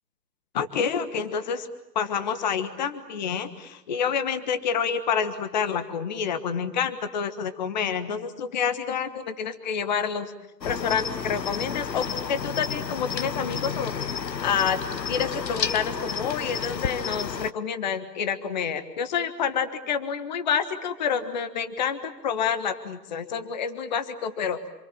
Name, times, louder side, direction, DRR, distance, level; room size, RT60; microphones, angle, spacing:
voice 1, 0.5-1.7 1.9-10.3 10.6-14.8 15.1-24.6, left 7 dB, 25° left, 11 dB, 1.4 m, -28 dB
Cricket, 10.6-17.5, left 6 dB, 85° left, 1.3 m, -31 dB
27.5 x 22.5 x 8.9 m, 0.91 s
hypercardioid pair, 160°, 49 cm